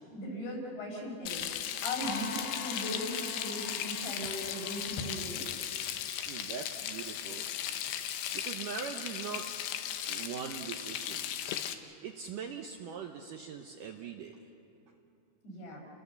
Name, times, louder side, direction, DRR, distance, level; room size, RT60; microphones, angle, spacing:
voice 1, 0.1-1.5 1.8-5.5 10.2-10.4 15.4-15.8, left 1 dB, 65° left, -2 dB, 7.2 m, -38 dB
Frying (food), 1.3-11.7, left 10 dB, 85° left, 3.2 m, -37 dB
sound 1, 2.0-5.7, left 4 dB, 35° left, 3.4 m, -45 dB
voice 2, 6.3-7.5 8.3-9.4 10.1-11.3 12.0-14.5, right 7 dB, 70° right, 3 dB, 2.1 m, -41 dB
30.0 x 20.0 x 7.0 m, 2.8 s
omnidirectional pair, 4.8 m